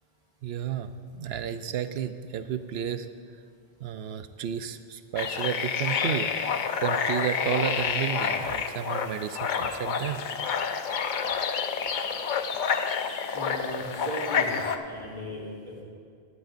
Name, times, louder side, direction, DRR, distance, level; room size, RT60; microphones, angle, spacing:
voice 1, 0.4-3.1 3.8-6.3 6.8-10.2, right 9 dB, 75° right, 10 dB, 0.8 m, -32 dB
sound 1, 5.2-14.8, left 6 dB, 55° left, 0.7 m, -29 dB
voice 2, 13.3-14.5 14.8-15.8, equal, 30° right, -7 dB, 2.8 m, -37 dB
16.5 x 12.0 x 2.6 m, 2.2 s
omnidirectional pair, 1.1 m